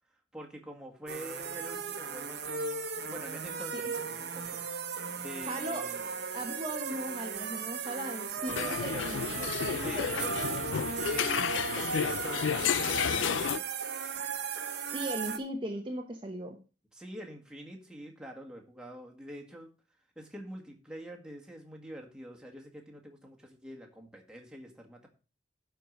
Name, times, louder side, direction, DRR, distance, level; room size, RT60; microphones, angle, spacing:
voice 1, 0.3-2.8 3.1-4.6 5.2-6.0 9.8-10.3 11.1-13.7 16.9-19.7 20.2-25.1, equal, 5° right, 0 dB, 1.8 m, -45 dB
sound 1, 1.1-15.4, right 5 dB, 60° right, 1.1 m, -36 dB
voice 2, 5.5-5.9 6.3-10.8 14.9-16.6, right 1 dB, 25° right, 3 dB, 0.9 m, -38 dB
Liquid, 8.0-8.1 8.6-11.0 11.5-12.9 13.3-13.5, left 1 dB, 30° left, 3.5 m, -53 dB
sound 2, 8.5-13.6, left 8 dB, 90° left, 0.4 m, -31 dB
11.0 x 4.7 x 6.3 m, 0.35 s
head